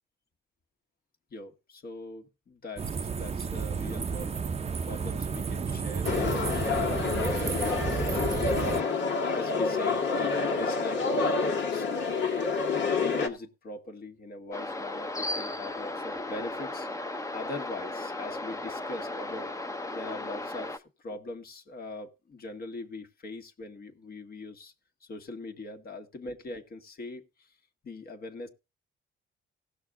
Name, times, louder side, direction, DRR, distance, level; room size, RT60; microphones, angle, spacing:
voice 1, 1.3-4.3 4.8-8.5 9.3-12.2 12.7-16.9 17.3-19.6 19.9-24.7 25.0-27.5 27.8-28.5, left 2 dB, 50° left, 1.8 m, -42 dB
sound 1, 2.8-8.8, right 5 dB, 30° right, 0.7 m, -32 dB
sound 2, 6.0-13.3, left 4 dB, 70° left, 2.0 m, -28 dB
sound 3, 14.5-20.8, left 2 dB, 15° left, 0.9 m, -36 dB
17.0 x 6.3 x 3.7 m
cardioid pair, 90°, 20 cm